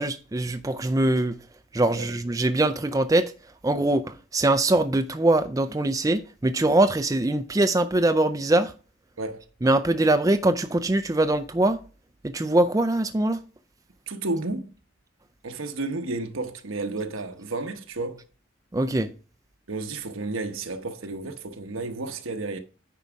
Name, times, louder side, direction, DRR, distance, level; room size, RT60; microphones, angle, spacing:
voice 1, 0.0-1.4 1.7-3.3 3.6-8.7 9.6-11.8 12.2-13.4 18.7-19.1, right 2 dB, 15° right, 0.4 m, -22 dB
voice 2, 9.2-9.5 14.1-14.7 15.4-18.2 19.7-22.6, right 2 dB, 80° right, 1.0 m, -32 dB
9.3 x 4.7 x 5.1 m
head